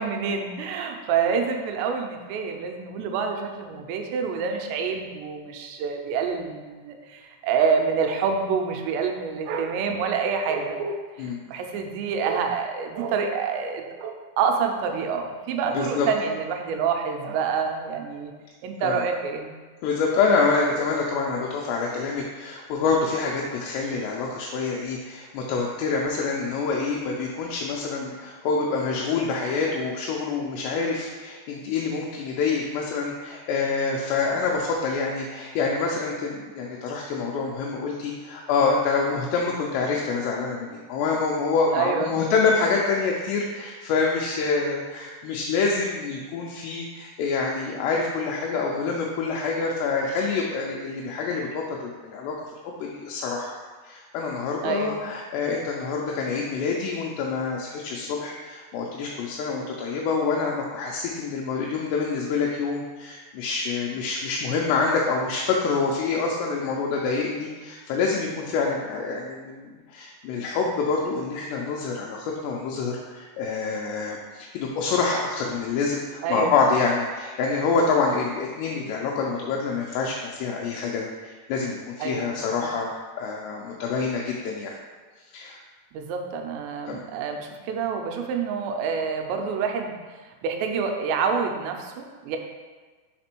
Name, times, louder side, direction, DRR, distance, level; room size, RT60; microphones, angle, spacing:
voice 1, 0.0-18.3 18.6-19.6 41.7-42.2 54.6-55.0 76.2-76.5 82.0-82.7 85.9-90.0 90.4-92.4, right 6 dB, 90° right, 3 dB, 2.9 m, -27 dB
voice 2, 15.7-16.1 18.8-19.0 19.8-52.4 52.6-53.5 53.9-82.9 83.2-84.7 85.3-85.6 86.9-87.0, left 4 dB, 85° left, -1 dB, 2.7 m, -26 dB
5.9 x 4.1 x 4.4 m, 1.4 s
omnidirectional pair, 5.0 m